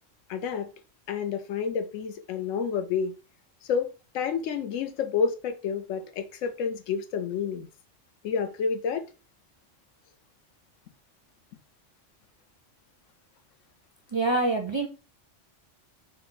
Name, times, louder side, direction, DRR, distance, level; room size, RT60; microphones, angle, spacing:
voice 1, 0.3-0.7 1.1-3.1 3.7-3.9 4.1-7.7 8.2-9.0, left 6 dB, 90° left, 1.0 m, -29 dB
voice 2, 14.1-14.9, right 2 dB, 40° right, 0.4 m, -25 dB
4.0 x 2.2 x 3.8 m
omnidirectional pair, 1.3 m